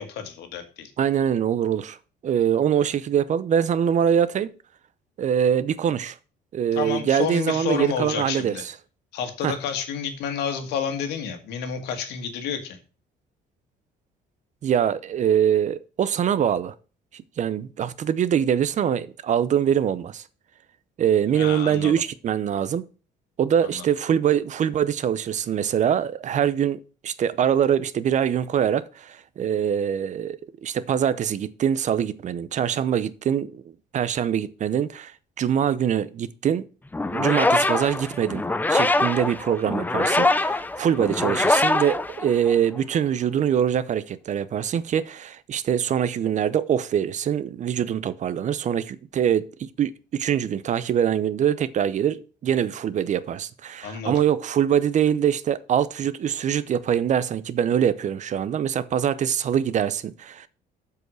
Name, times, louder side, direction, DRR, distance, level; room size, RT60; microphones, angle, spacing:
voice 1, 0.0-0.9 6.7-8.6 9.1-12.8 21.3-22.0 23.7-23.9 53.8-54.1, left 7 dB, 85° left, 1.6 m, -30 dB
voice 2, 1.0-2.0 2.2-4.5 5.2-6.2 6.5-8.6 9.4-9.5 14.6-16.7 17.1-20.2 21.0-22.8 23.4-33.6 33.9-35.1 35.4-36.6 37.1-38.4 38.7-60.5, right 9 dB, 45° right, 0.6 m, -23 dB
sound 1, 36.9-42.8, left 2 dB, 10° left, 0.6 m, -23 dB
7.9 x 4.8 x 6.3 m
cardioid pair, 110°, 17 cm